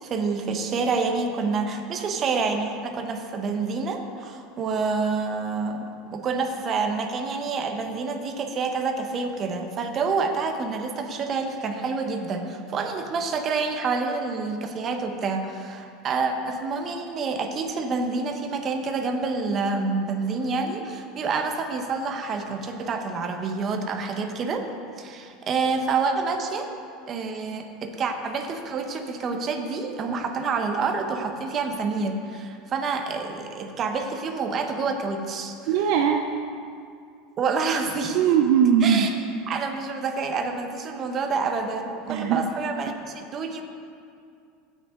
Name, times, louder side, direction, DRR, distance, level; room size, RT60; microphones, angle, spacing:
voice 1, 0.0-24.7 25.0-26.7 27.1-35.6 37.4-38.2 38.8-39.1 39.5-43.6, right 4 dB, 35° right, 4 dB, 1.0 m, -28 dB
voice 2, 35.7-36.2 38.1-39.1 42.1-42.5, right 8 dB, 65° right, 4 dB, 0.6 m, -20 dB
16.0 x 6.6 x 3.8 m, 2.4 s
supercardioid pair, 135°, 0 cm